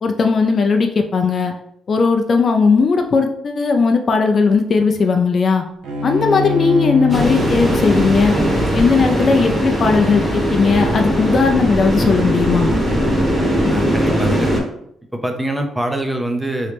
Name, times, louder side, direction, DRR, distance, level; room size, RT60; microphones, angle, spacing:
voice 1, 0.0-1.5 1.9-5.6 6.0-8.3 8.7-12.7, left 4 dB, 45° left, 4 dB, 0.4 m, -16 dB
Bowed string instrument, 5.8-11.2, left 4 dB, 85° right, 0.6 m, -27 dB
sound 1, 7.1-14.6, equal, 30° right, 1.3 m, -19 dB
voice 2, 13.7-14.5 15.1-16.7, right 1 dB, 10° right, 4 dB, 0.5 m, -23 dB
3.1 x 2.8 x 3.3 m, 0.72 s
cardioid pair, 90°, 0 cm